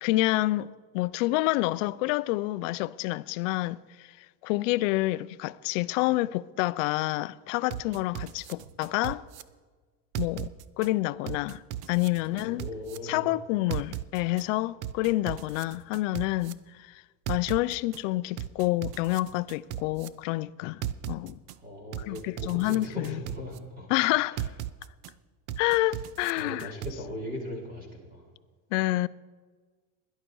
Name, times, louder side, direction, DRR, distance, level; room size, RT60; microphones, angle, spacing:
voice 1, 0.0-9.2 10.2-11.6 11.9-12.7 13.0-17.0 17.3-21.4 22.1-23.2 23.9-24.4 25.6-26.7 28.7-29.1, left 18 dB, 60° left, 0.5 m, -28 dB
sound 1, 7.7-9.4 10.1-10.9 11.3-13.0 13.7-14.4 14.8-16.5 17.3-18.0 18.4-20.1 20.8-21.5 21.9-23.6 24.4-25.1 25.5-26.9, right 12 dB, 45° right, 0.5 m, -36 dB
voice 2, 12.3-13.3 21.6-23.9 24.3-24.5 25.8-26.0 26.4-28.3, left 1 dB, 20° right, 3.3 m, -39 dB
17.0 x 11.0 x 4.7 m
supercardioid pair, 165°, 44 cm